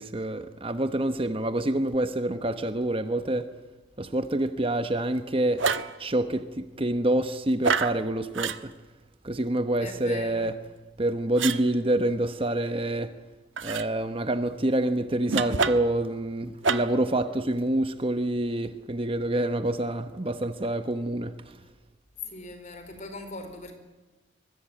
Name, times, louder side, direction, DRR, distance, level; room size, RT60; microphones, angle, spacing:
voice 1, 0.0-3.5 4.0-5.6 6.0-8.7 9.2-10.6 11.0-13.1 13.6-21.6, right 1 dB, 30° right, 9 dB, 1.0 m, -27 dB
sound 1, 5.6-6.0 7.6-8.0 8.3-8.6 11.4-11.6 13.6-13.9 15.3-16.0 16.6-17.0, right 5 dB, 80° right, 1.2 m, -27 dB
voice 2, 9.8-10.5 22.2-23.7, left 2 dB, 40° left, 7 dB, 4.3 m, -40 dB
24.0 x 21.5 x 9.0 m, 1.2 s
head